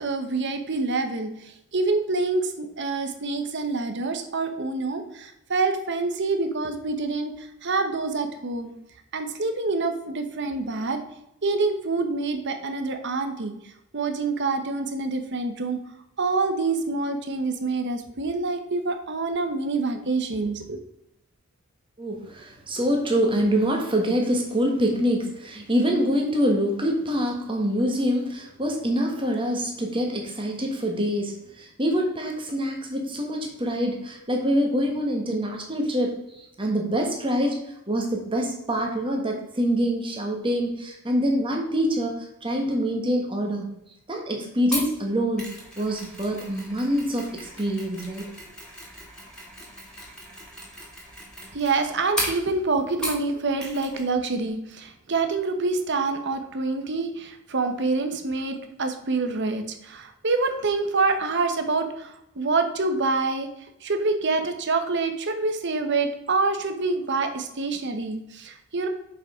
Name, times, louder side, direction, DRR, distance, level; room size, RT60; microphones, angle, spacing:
voice 1, 0.0-8.7 9.1-11.0 11.4-13.5 13.9-15.8 16.2-20.8 51.5-63.5 63.8-68.9, right 3 dB, 50° right, 7 dB, 1.0 m, -26 dB
voice 2, 22.0-37.6 37.9-43.7 44.1-45.5 45.8-48.3, equal, 25° right, 1 dB, 1.6 m, -25 dB
Mechanisms, 44.7-53.3 53.6-54.1 54.3-54.5, equal, 5° left, 2.3 m, -36 dB
6.9 x 5.4 x 5.0 m, 0.82 s
head